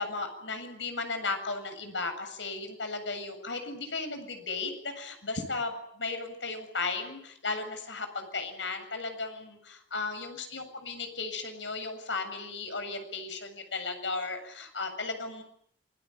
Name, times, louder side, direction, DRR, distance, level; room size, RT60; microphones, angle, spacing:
voice 1, 0.0-15.4, left 3 dB, 85° left, 7 dB, 7.7 m, -35 dB
27.5 x 21.5 x 9.4 m, 0.69 s
head